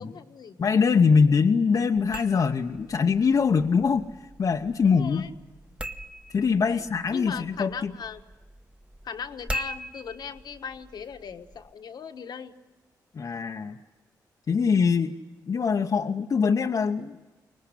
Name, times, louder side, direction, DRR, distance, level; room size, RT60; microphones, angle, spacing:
voice 1, 0.0-0.6 4.8-5.3 6.6-6.8 7.1-8.2 9.0-12.5, left 6 dB, 70° left, 7 dB, 1.3 m, -38 dB
voice 2, 0.6-4.1 4.4-5.3 6.3-7.9 13.1-13.8 14.5-15.2 15.4-17.2, left 5 dB, 55° left, 3 dB, 0.9 m, -23 dB
sound 1, 1.9-11.7, right 1 dB, 15° right, 1.2 m, -42 dB
24.0 x 19.5 x 9.9 m, 1.2 s
cardioid pair, 65°, 7 cm